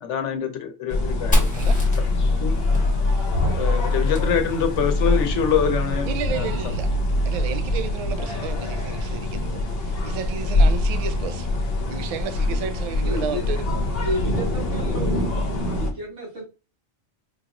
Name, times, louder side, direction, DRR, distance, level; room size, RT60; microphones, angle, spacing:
voice 1, 0.0-1.7 2.2-2.6 3.6-6.7, left 7 dB, 85° left, 1.1 m, -25 dB
sound 1, 0.9-15.9, left 2 dB, 60° left, 1.0 m, -23 dB
Fire, 1.3-5.0, left 1 dB, 5° left, 1.3 m, -28 dB
voice 2, 6.0-6.9 7.3-11.5 11.9-13.6, right 6 dB, 60° right, 0.3 m, -32 dB
voice 3, 13.0-13.5 14.0-15.3 15.7-16.4, equal, 85° right, 2.3 m, -31 dB
4.6 x 2.9 x 2.4 m
omnidirectional pair, 1.2 m